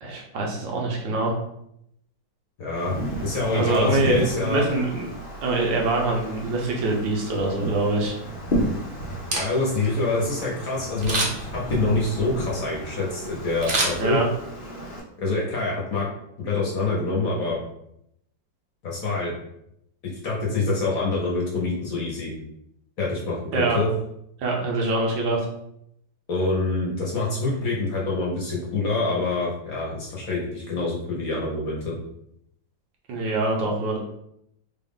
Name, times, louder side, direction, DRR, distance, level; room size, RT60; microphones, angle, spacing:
voice 1, 0.0-1.3 3.5-5.1 5.4-8.1 14.0-14.3 23.5-23.8 24.4-25.5 33.1-34.0, right 2 dB, 80° right, -1 dB, 1.5 m, -24 dB
voice 2, 2.6-4.7 9.3-14.2 15.2-16.1 16.4-17.6 18.8-19.3 20.0-22.3 23.0-23.9 26.3-31.9, left 3 dB, 55° left, -4 dB, 1.0 m, -26 dB
Wind, 2.7-15.0, equal, 85° left, 0.4 m, -33 dB
Camera, 9.1-9.9 11.0-11.6 13.6-14.6 15.0-15.1, right 2 dB, 55° right, 0.9 m, -27 dB
3.5 x 2.4 x 3.6 m, 0.76 s
omnidirectional pair, 2.0 m